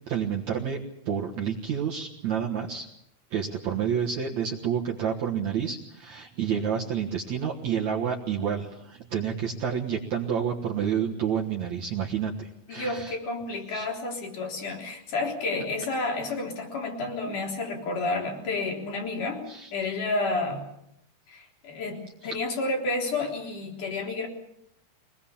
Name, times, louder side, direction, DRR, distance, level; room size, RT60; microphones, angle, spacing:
voice 1, 0.0-2.9 3.3-13.1 13.7-13.9 19.5-19.7 22.2-22.4, right 8 dB, 55° right, -1 dB, 2.5 m, -29 dB
voice 2, 12.7-19.4 19.7-20.6 21.3-22.0 22.2-24.3, left 3 dB, 55° left, 1 dB, 5.1 m, -30 dB
24.0 x 19.5 x 7.3 m, 0.79 s
omnidirectional pair, 4.3 m